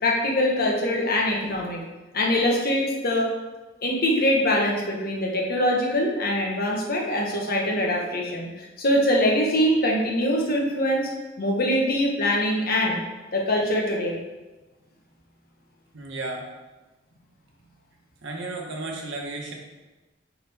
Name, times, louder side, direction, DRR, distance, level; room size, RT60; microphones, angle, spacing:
voice 1, 0.0-1.8 2.1-3.3 3.8-11.1 11.4-13.0 13.3-14.2, left 1 dB, 50° left, -1 dB, 1.3 m, -23 dB
voice 2, 15.9-16.5 18.2-19.5, right 2 dB, 70° right, 0 dB, 1.3 m, -33 dB
9.5 x 3.8 x 3.5 m, 1.1 s
head